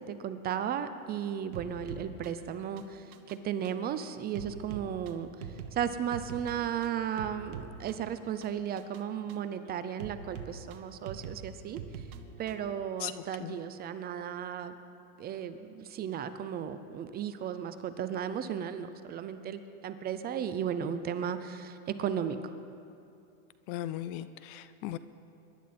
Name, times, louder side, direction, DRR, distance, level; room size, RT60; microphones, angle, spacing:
voice 1, 0.0-5.3 5.7-11.8 12.4-14.8 15.2-22.5, right 8 dB, 25° right, 11 dB, 0.5 m, -35 dB
sound 1, 1.5-12.7, right 7 dB, 80° right, 1.3 m, -45 dB
voice 2, 23.7-25.0, left 13 dB, 40° left, 14 dB, 0.5 m, -37 dB
23.5 x 11.5 x 4.3 m, 2.5 s
supercardioid pair, 130°, 42 cm